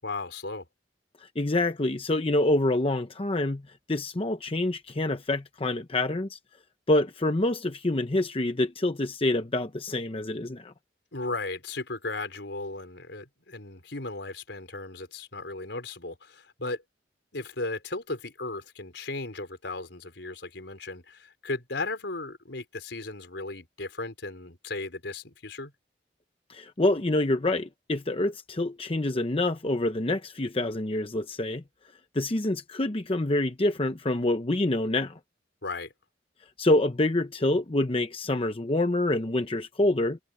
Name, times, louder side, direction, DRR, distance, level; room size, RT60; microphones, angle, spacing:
voice 1, 0.0-0.7 11.1-16.8 17.3-25.7 35.6-35.9, left 2 dB, 75° left, 4.5 m, -36 dB
voice 2, 1.2-3.6 3.9-6.4 6.9-10.7 26.5-31.6 32.1-35.2 36.6-40.2, left 1 dB, 30° left, 0.8 m, -26 dB
head